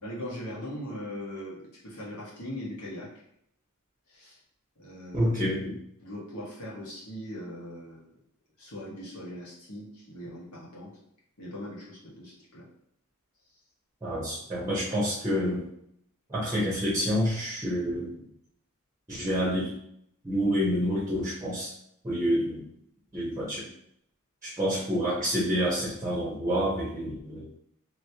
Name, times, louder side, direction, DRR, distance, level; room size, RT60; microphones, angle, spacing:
voice 1, 0.0-3.1 4.1-4.4 4.8-5.3 6.0-8.1 8.6-11.0 11.4-12.7, equal, 80° left, -6 dB, 1.4 m, -40 dB
voice 2, 5.1-5.7 14.0-15.7 16.3-18.2 19.1-19.8 20.2-21.7 22.0-22.7 23.1-23.7 24.4-27.5, equal, 15° right, -6 dB, 0.8 m, -28 dB
3.1 x 3.0 x 2.8 m, 0.71 s
head